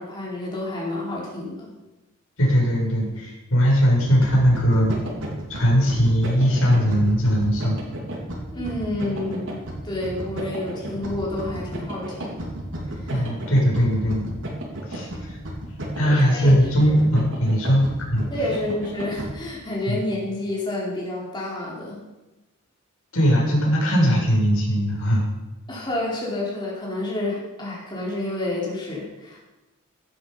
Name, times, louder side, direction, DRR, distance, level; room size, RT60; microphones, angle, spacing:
voice 1, 0.0-1.7 8.5-12.5 12.9-13.2 16.0-17.0 18.3-22.0 25.7-29.4, left 1 dB, 20° left, -5 dB, 4.1 m, -29 dB
voice 2, 2.4-5.0 5.5-7.8 13.1-14.3 14.9-15.4 15.9-17.9 18.1-18.3 19.9-20.0 23.1-25.3, equal, 80° left, -2 dB, 6.2 m, -20 dB
sound 1, 4.1-19.3, right 1 dB, 60° right, 4.1 m, -33 dB
16.5 x 12.0 x 5.6 m, 1.1 s
head